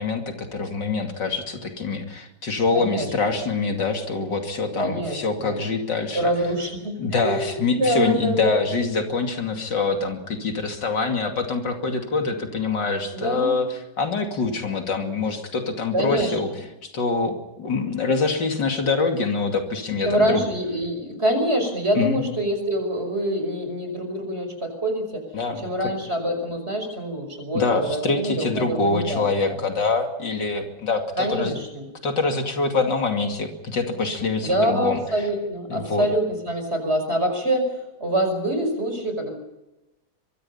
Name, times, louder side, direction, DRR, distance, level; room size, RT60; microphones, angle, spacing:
voice 1, 0.0-6.3 7.0-16.5 16.8-20.4 21.9-22.2 25.3-25.9 27.5-31.5 32.0-35.0 35.7-36.1, left 4 dB, 75° left, 4 dB, 3.2 m, -25 dB
voice 2, 2.7-3.1 4.8-5.6 6.1-8.6 13.1-13.6 15.9-16.4 20.0-25.2 25.6-29.6 31.2-31.9 34.4-37.7 38.0-39.3, right 1 dB, 35° right, 6 dB, 5.8 m, -25 dB
24.5 x 23.5 x 5.7 m, 0.96 s
omnidirectional pair, 1.9 m